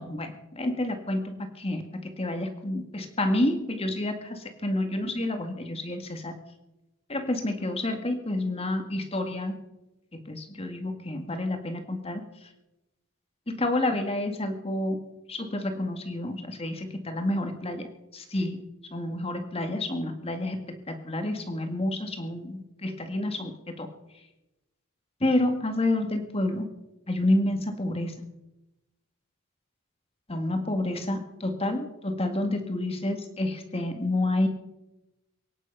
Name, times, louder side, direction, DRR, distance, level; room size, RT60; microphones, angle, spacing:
voice 1, 0.0-6.3 7.1-9.6 10.3-12.2 13.5-15.0 15.3-17.9 18.1-18.6 18.9-23.9 25.2-26.7 27.1-28.2 30.3-34.5, left 1 dB, 30° left, 6 dB, 2.0 m, -29 dB
23.5 x 10.0 x 5.7 m, 0.96 s
head